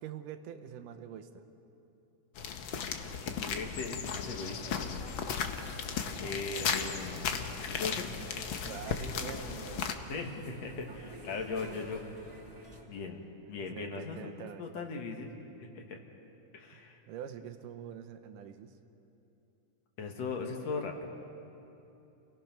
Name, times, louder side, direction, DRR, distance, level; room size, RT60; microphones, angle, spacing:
voice 1, 0.0-1.4 5.8-6.2 8.6-10.4 13.7-14.7 17.1-18.7, right 8 dB, 85° right, 8 dB, 2.5 m, -45 dB
sound 1, 2.4-9.9, left 7 dB, 80° left, 1.1 m, -36 dB
voice 2, 3.2-5.0 6.2-8.1 10.1-12.0 12.9-13.2 13.5-15.3 15.6-16.0 16.5-17.0 20.0-21.1, left 4 dB, 60° left, 3 dB, 2.4 m, -39 dB
sound 2, 4.4-12.8, equal, 10° right, 2.7 m, -50 dB
28.5 x 18.0 x 5.9 m, 2.9 s
omnidirectional pair, 3.6 m